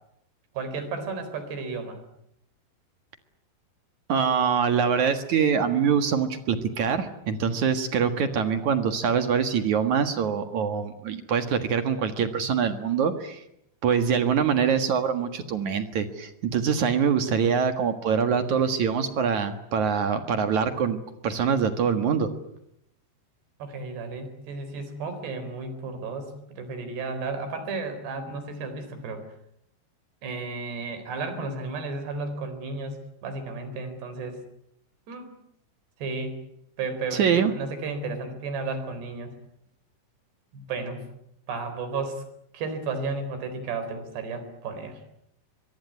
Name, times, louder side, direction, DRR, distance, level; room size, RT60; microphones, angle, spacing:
voice 1, 0.5-2.0 23.6-29.3 30.2-34.4 35.1-35.3 36.0-36.4 36.8-39.3 40.5-41.0 41.5-42.2 42.5-45.0, right 3 dB, 75° right, 10 dB, 6.2 m, -33 dB
voice 2, 4.1-13.4 13.8-21.0 21.2-22.3 37.1-37.5, right 7 dB, 55° right, 8 dB, 2.5 m, -24 dB
23.5 x 23.0 x 9.6 m, 0.77 s
omnidirectional pair, 4.9 m